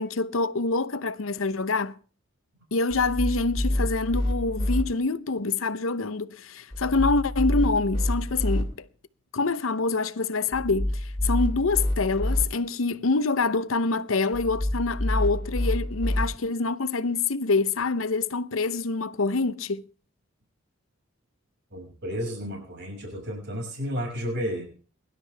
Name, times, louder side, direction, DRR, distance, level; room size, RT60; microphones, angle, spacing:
voice 1, 0.0-1.9 2.7-8.7 9.3-19.8, left 3 dB, 85° left, 0.8 m, -26 dB
sound 1, 2.9-4.8 6.7-8.6 10.5-12.4 14.3-16.2, left 1 dB, 20° left, 2.6 m, -27 dB
voice 2, 21.7-24.6, equal, 55° right, 6.2 m, -32 dB
23.0 x 12.0 x 3.4 m
head